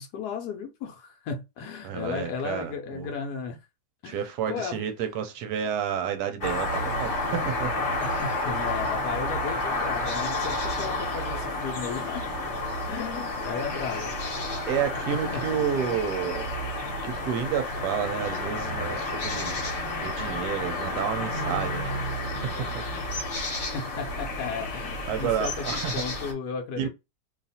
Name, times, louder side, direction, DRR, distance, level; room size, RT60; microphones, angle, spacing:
voice 1, 0.0-3.6 4.0-4.2 4.5-4.8 8.0-12.2 12.9-14.1 14.4-14.7 15.1-15.6 23.6-26.9, left 6 dB, 70° left, 1.1 m, -35 dB
voice 2, 1.8-3.1 4.0-7.7 14.7-16.5 17.0-19.6 20.0-21.9 25.1-26.0 26.8-26.9, right 8 dB, 70° right, 1.0 m, -30 dB
sound 1, 6.4-26.3, left 2 dB, 45° left, 1.0 m, -30 dB
2.8 x 2.4 x 4.1 m
omnidirectional pair, 2.0 m